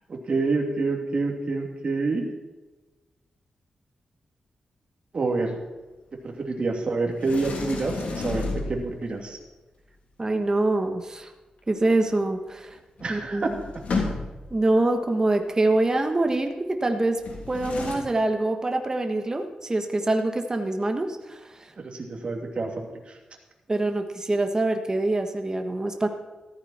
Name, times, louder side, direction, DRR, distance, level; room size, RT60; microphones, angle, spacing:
voice 1, 0.1-2.2 5.1-5.6 6.2-9.4 13.0-13.5 21.8-23.2, right 3 dB, 50° right, 1 dB, 2.8 m, -27 dB
Sliding door, 7.2-9.2 12.7-12.8 13.0-14.6 17.2-17.9, left 3 dB, 80° left, 3.1 m, -32 dB
voice 2, 10.2-11.3 11.7-12.8 13.1-13.6 14.5-17.2 17.5-21.7 23.7-26.1, right 2 dB, 25° right, 5 dB, 1.4 m, -25 dB
14.0 x 14.0 x 4.4 m, 1.2 s
wide cardioid pair, 95°, 2 cm